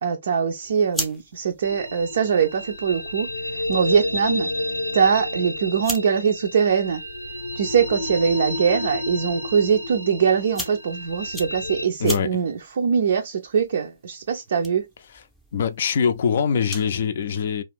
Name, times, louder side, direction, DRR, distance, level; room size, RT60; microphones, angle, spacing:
voice 1, 0.0-3.3 3.7-4.5 4.9-7.0 7.6-14.9, right 7 dB, 50° right, 0.4 m, -22 dB
sound 1, 0.6-17.0, equal, ahead, 0.6 m, -41 dB
sound 2, 1.6-11.9, left 1 dB, 85° left, 0.7 m, -30 dB
voice 2, 12.0-12.4 15.1-15.2 15.5-17.6, left 6 dB, 50° left, 0.4 m, -23 dB
2.4 x 2.4 x 3.4 m
figure-of-eight pair, 135°, 0 cm